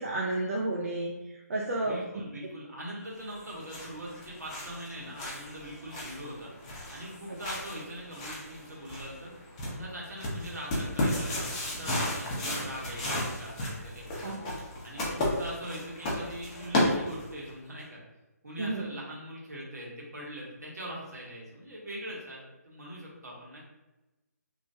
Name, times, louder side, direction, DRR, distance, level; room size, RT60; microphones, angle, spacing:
voice 1, 0.0-2.0 7.3-7.4 14.2-14.6 18.6-18.8, right 2 dB, 55° right, -3 dB, 0.4 m, -32 dB
voice 2, 1.8-6.5 6.9-9.3 9.7-14.4 14.8-18.0 18.4-23.6, equal, 80° right, -4 dB, 1.2 m, -42 dB
sound 1, 3.3-17.5, left 1 dB, 20° left, 0.6 m, -34 dB
3.0 x 2.2 x 2.7 m, 1.0 s
figure-of-eight pair, 155°, 9 cm